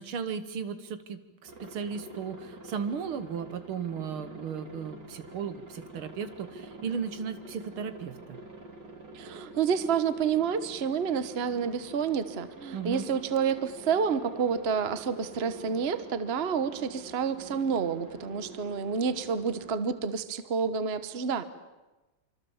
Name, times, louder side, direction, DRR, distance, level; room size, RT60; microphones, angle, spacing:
voice 1, 0.0-8.4 12.7-13.1, right 6 dB, 80° right, 10 dB, 2.2 m, -36 dB
Aircraft, 1.4-19.7, right 2 dB, 55° right, 3.2 m, -47 dB
voice 2, 9.1-21.4, right 6 dB, 35° right, 11 dB, 1.2 m, -29 dB
26.0 x 25.5 x 7.2 m, 1.1 s
omnidirectional pair, 2.3 m